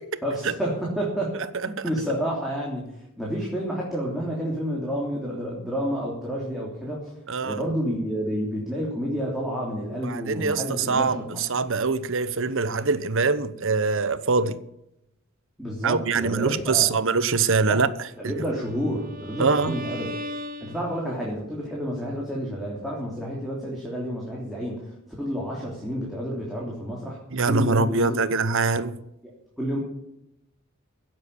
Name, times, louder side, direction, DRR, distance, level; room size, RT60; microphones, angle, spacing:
voice 1, 0.2-1.3 1.6-2.9 3.2-7.1 7.4-11.3 15.6-16.9 17.6-17.8 18.2-20.1 20.6-24.9 25.2-27.2 27.5-28.3 29.2-29.8, equal, ahead, 3.3 m, -29 dB
voice 2, 7.3-7.6 10.0-14.6 15.8-17.9 18.2-18.3 19.4-19.7 27.3-29.0, right 4 dB, 65° right, 1.0 m, -23 dB
Bowed string instrument, 18.3-21.4, equal, 45° right, 1.7 m, -38 dB
16.0 x 7.7 x 8.6 m
head